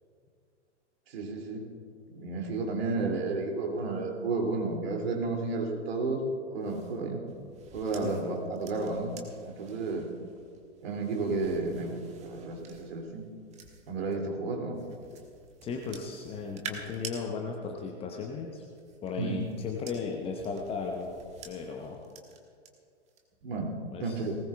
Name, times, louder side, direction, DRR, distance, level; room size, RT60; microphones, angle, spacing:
voice 1, 1.1-1.6 2.1-6.2 6.5-7.2 7.7-9.1 9.4-10.1 10.8-13.2 13.9-14.8 19.2-19.5 23.4-23.7 24.0-24.4, right 3 dB, 55° right, 0 dB, 2.8 m, -32 dB
sound 1, 6.6-14.2 14.7-17.2 18.5-22.7 23.1-23.4, right 5 dB, 20° right, 1.5 m, -49 dB
voice 2, 15.6-18.6 19.0-21.1 21.4-22.0 23.9-24.2, left 5 dB, 15° left, 1 dB, 0.8 m, -36 dB
19.5 x 18.5 x 2.4 m, 2.3 s
figure-of-eight pair, 110°, 36 cm